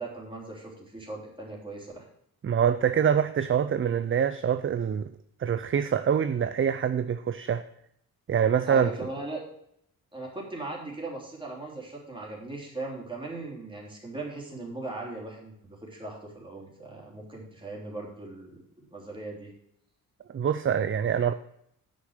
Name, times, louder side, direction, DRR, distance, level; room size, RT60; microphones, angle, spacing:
voice 1, 0.0-2.0 8.7-9.5 10.1-18.6 18.9-19.5, right 2 dB, 15° right, 3.3 m, -38 dB
voice 2, 2.4-5.1 5.4-7.6 8.3-8.9 20.3-21.3, right 8 dB, 35° right, 0.4 m, -25 dB
9.6 x 6.3 x 6.5 m
wide cardioid pair, 155°, 36 cm